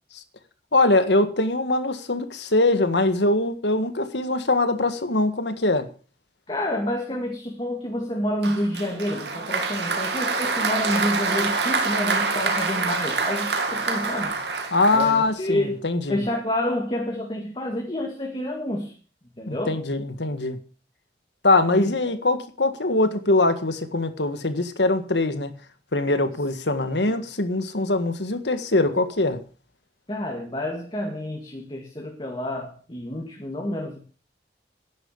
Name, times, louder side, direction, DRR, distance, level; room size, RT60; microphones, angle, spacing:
voice 1, 0.7-5.9 14.7-16.2 19.5-20.6 21.4-25.5 25.9-29.4, left 2 dB, 85° left, 1.8 m, -22 dB
voice 2, 6.5-14.4 14.9-18.9 19.4-19.8 21.7-22.1 27.1-27.2 30.1-34.0, left 1 dB, 30° left, 2.1 m, -29 dB
Applause, 8.4-15.5, right 4 dB, 80° right, 2.6 m, -26 dB
11.0 x 10.5 x 6.6 m
head